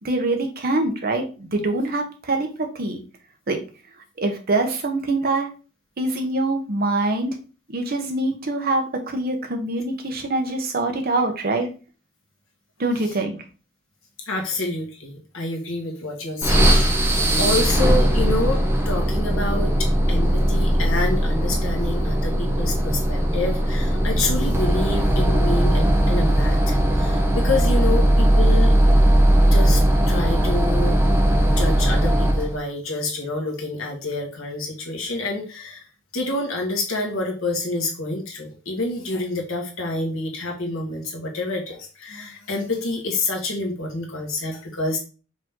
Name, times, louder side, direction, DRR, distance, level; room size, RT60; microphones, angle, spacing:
voice 1, 0.0-3.0 3.5-3.6 4.2-5.5 6.0-7.3 7.7-11.7 12.8-13.3, right 2 dB, 45° right, 4 dB, 0.9 m, -24 dB
voice 2, 14.3-28.8 29.4-31.0 31.5-35.9 36.1-45.0, left 2 dB, 70° left, 1 dB, 1.4 m, -28 dB
sound 1, 16.4-32.6, right 1 dB, 10° right, 0.7 m, -19 dB
5.1 x 2.8 x 3.7 m, 0.35 s
head